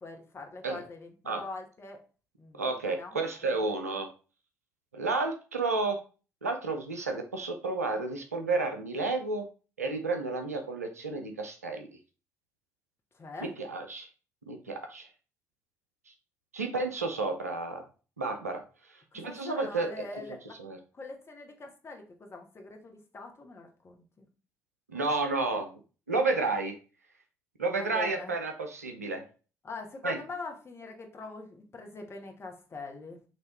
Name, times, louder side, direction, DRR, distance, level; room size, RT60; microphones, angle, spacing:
voice 1, 0.0-2.0 2.4-3.6 13.1-13.5 19.1-20.6 20.9-24.3 27.7-28.3 29.6-33.2, left 3 dB, 30° left, 3 dB, 1.2 m, -43 dB
voice 2, 2.6-4.1 4.9-6.0 6.4-9.4 9.8-11.9 13.4-14.1 14.5-15.1 16.5-17.8 18.2-18.6 19.1-19.9 20.6-20.8 24.9-25.8 26.1-26.7 27.6-29.2 30.0-30.2, right 3 dB, 85° right, 5 dB, 0.5 m, -31 dB
6.0 x 2.9 x 3.0 m, 0.35 s
figure-of-eight pair, 45°, 8 cm